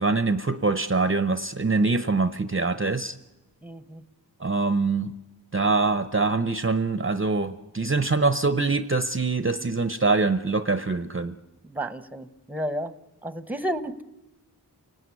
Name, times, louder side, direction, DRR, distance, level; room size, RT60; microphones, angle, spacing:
voice 1, 0.0-3.2 4.4-5.1 5.5-11.3, right 3 dB, 30° right, 11 dB, 0.8 m, -24 dB
voice 2, 3.6-4.0 11.6-12.9 13.2-14.0, right 1 dB, 5° right, 13 dB, 1.0 m, -32 dB
28.5 x 17.5 x 9.6 m, 1.1 s
wide cardioid pair, 50°, 40 cm